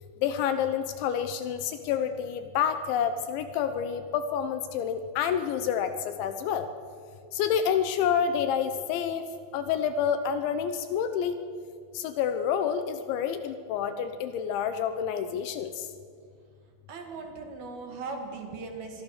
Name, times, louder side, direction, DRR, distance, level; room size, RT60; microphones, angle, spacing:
voice 1, 0.2-5.9 6.2-6.7 7.3-9.2 9.5-11.4 12.0-15.7, left 8 dB, 75° left, 9 dB, 3.1 m, -28 dB
voice 2, 16.9-19.0, right 4 dB, 55° right, 3 dB, 3.5 m, -39 dB
26.0 x 23.0 x 6.6 m, 2.2 s
omnidirectional pair, 5.7 m